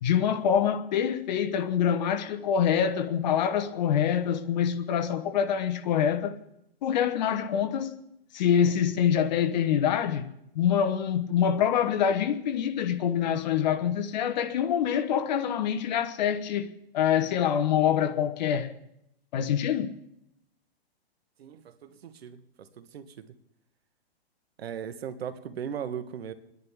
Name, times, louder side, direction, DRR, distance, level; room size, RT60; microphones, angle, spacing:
voice 1, 0.0-6.4 6.8-8.0 8.3-10.3 10.5-16.7 16.9-18.7 19.3-19.9, left 8 dB, 45° left, 1.0 m, -25 dB
voice 2, 21.4-23.3 24.6-26.3, right 8 dB, 70° right, 1.4 m, -38 dB
29.5 x 10.5 x 3.6 m
hypercardioid pair, 160°, 32 cm